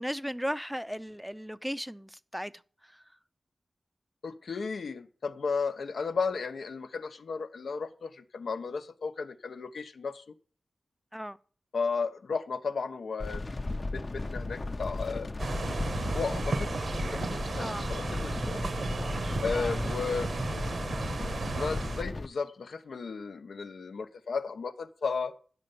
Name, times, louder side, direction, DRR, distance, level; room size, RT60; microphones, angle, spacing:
voice 1, 0.0-2.5 11.1-11.4 17.6-17.9 19.5-19.7, equal, ahead, 0.5 m, -36 dB
voice 2, 4.2-10.2 11.7-13.6 13.9-15.3 16.0-18.6 19.4-20.3 21.6-25.3, left 5 dB, 85° left, 0.8 m, -34 dB
sound 1, 13.2-22.3, left 2 dB, 40° left, 0.7 m, -35 dB
sound 2, 15.4-22.0, right 3 dB, 75° right, 1.1 m, -34 dB
9.9 x 6.6 x 6.9 m
wide cardioid pair, 85°, 0 cm